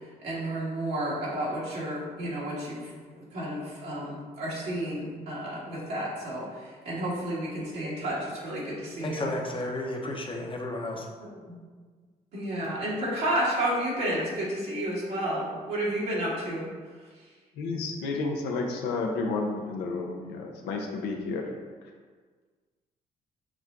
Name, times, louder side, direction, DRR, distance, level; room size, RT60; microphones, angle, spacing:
voice 1, 0.2-9.3 11.2-11.6 12.3-16.7 20.1-20.2, right 1 dB, 75° right, -7 dB, 1.4 m, -31 dB
voice 2, 9.0-11.1, left 2 dB, 30° left, 1 dB, 0.8 m, -32 dB
voice 3, 17.6-21.5, left 3 dB, 80° left, 2 dB, 0.7 m, -31 dB
6.0 x 2.2 x 3.6 m, 1.5 s
supercardioid pair, 55°, 17 cm